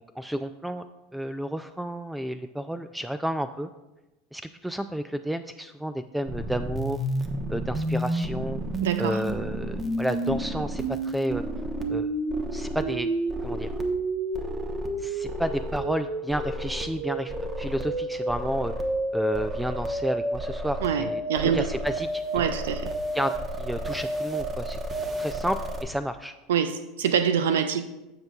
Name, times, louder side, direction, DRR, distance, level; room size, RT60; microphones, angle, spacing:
voice 1, 0.2-0.9 1.1-3.7 4.3-7.0 7.5-8.6 9.0-11.4 11.9-12.1 12.5-13.1 13.4-13.7 15.0-18.7 19.1-22.2 23.1-24.8 25.2-26.3, equal, 5° right, 10 dB, 0.3 m, -31 dB
sound 1, 6.3-25.8, right 1 dB, 25° right, 1.0 m, -30 dB
voice 2, 8.8-9.2 20.8-21.7 22.3-22.9 26.5-27.9, right 8 dB, 85° right, 11 dB, 0.4 m, -25 dB
15.5 x 5.2 x 2.4 m, 1.0 s
hypercardioid pair, 90°, 0 cm